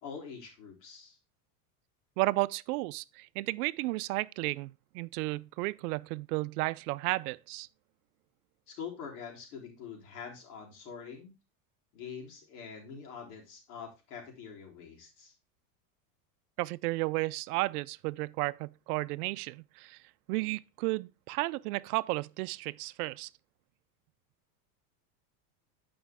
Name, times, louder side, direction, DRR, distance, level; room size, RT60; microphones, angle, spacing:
voice 1, 0.0-1.2 8.7-11.3 11.9-15.3, left 6 dB, 80° left, 3.6 m, -45 dB
voice 2, 2.2-7.7 16.6-20.0 20.3-23.3, right 21 dB, 75° right, 0.6 m, -33 dB
10.5 x 5.2 x 3.5 m
supercardioid pair, 130°, 46 cm